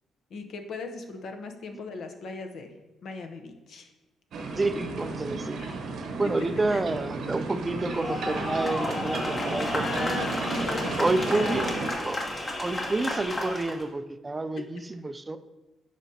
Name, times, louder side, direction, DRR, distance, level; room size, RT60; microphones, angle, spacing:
voice 1, 0.3-2.7 3.0-3.9 5.6-5.7 6.7-6.8 9.7-11.7 14.6-14.7, left 3 dB, 65° left, 6 dB, 0.8 m, -38 dB
sound 1, 4.3-11.9, right 3 dB, 70° right, 0.8 m, -33 dB
voice 2, 4.6-5.6 6.2-10.2 11.0-11.7 12.0-12.2 12.6-15.4, right 2 dB, 20° right, 11 dB, 0.3 m, -29 dB
sound 2, 7.9-13.8, left 1 dB, 35° left, 1.2 m, -32 dB
8.9 x 5.0 x 2.8 m, 1.1 s
cardioid pair, 90°, 0 cm